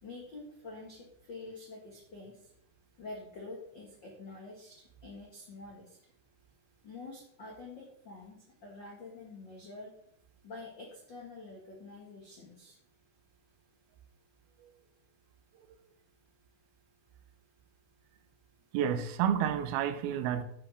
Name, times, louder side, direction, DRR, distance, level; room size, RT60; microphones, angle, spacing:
voice 1, 0.0-2.5 3.0-6.0 6.8-9.9 10.4-12.8, left 3 dB, 80° left, 1.0 m, -47 dB
voice 2, 18.7-20.4, right 9 dB, 75° right, 2.4 m, -30 dB
11.0 x 5.1 x 5.0 m
omnidirectional pair, 4.9 m